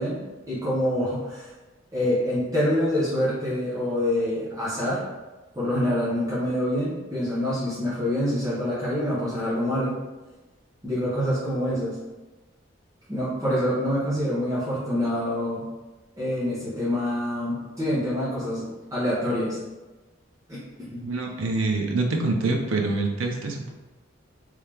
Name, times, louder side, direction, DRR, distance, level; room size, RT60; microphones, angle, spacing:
voice 1, 0.0-1.5 1.9-5.0 5.5-10.0 10.8-12.0 13.1-15.7 16.2-19.6 20.5-21.0, left 1 dB, 15° right, -10 dB, 0.8 m, -26 dB
voice 2, 21.0-23.7, right 3 dB, 85° right, 2 dB, 0.6 m, -25 dB
3.1 x 2.7 x 3.5 m, 1.1 s
head